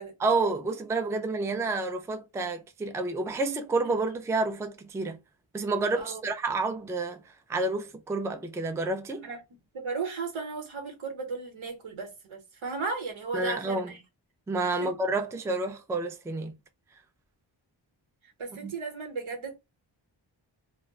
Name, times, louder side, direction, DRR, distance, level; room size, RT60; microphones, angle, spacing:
voice 1, 0.2-5.2 5.5-7.2 7.5-9.3 13.3-13.9 14.5-16.5 18.6-18.7, right 3 dB, 5° right, 0.3 m, -29 dB
voice 2, 9.2-14.0 14.7-14.9 18.2-19.5, right 4 dB, 80° right, 1.0 m, -36 dB
2.1 x 2.0 x 3.4 m
cardioid pair, 70°, 47 cm